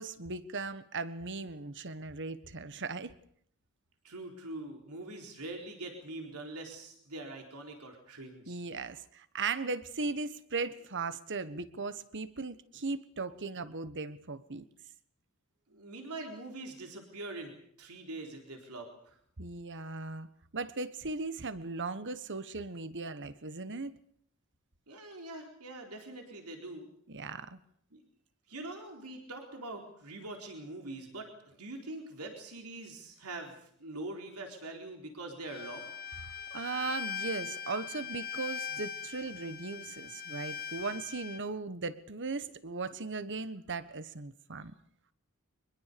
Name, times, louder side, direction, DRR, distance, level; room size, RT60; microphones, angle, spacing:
voice 1, 0.0-3.1 8.5-14.6 19.4-20.3 20.5-23.9 27.1-27.6 36.5-44.7, right 4 dB, 55° right, 13 dB, 1.4 m, -38 dB
voice 2, 4.0-8.7 15.7-17.5 17.8-19.2 24.9-26.9 27.9-28.0 28.5-35.9, right 2 dB, 80° right, 3 dB, 4.1 m, -43 dB
Bowed string instrument, 35.5-41.4, left 7 dB, 45° left, 1.0 m, -41 dB
24.5 x 21.5 x 6.9 m, 0.63 s
head